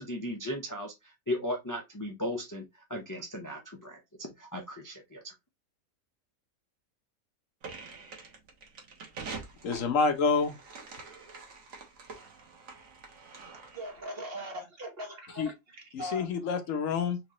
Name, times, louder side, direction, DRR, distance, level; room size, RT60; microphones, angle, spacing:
voice 1, 0.0-2.6 2.9-5.3, left 1 dB, 20° left, 0.7 m, -36 dB
sound 1, 7.6-14.0, right 4 dB, 75° right, 1.6 m, -46 dB
voice 2, 9.6-10.5 15.4-15.5 15.9-17.2, left 5 dB, 70° left, 1.1 m, -27 dB
voice 3, 13.7-16.3, equal, 45° right, 1.4 m, -40 dB
4.4 x 3.2 x 3.0 m
omnidirectional pair, 1.5 m